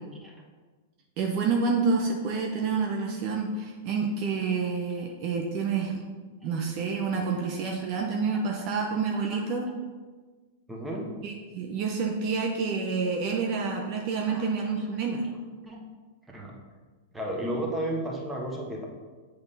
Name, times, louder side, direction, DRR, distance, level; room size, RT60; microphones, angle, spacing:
voice 1, 1.2-6.0 6.4-9.7 11.2-15.2, right 4 dB, 45° right, 0 dB, 0.8 m, -28 dB
voice 2, 9.1-9.4 10.7-11.1 14.2-14.5 15.6-15.8 16.3-16.6 17.1-18.9, right 1 dB, 10° right, -1 dB, 1.3 m, -33 dB
8.0 x 3.5 x 4.1 m, 1.4 s
figure-of-eight pair, 100°, 0 cm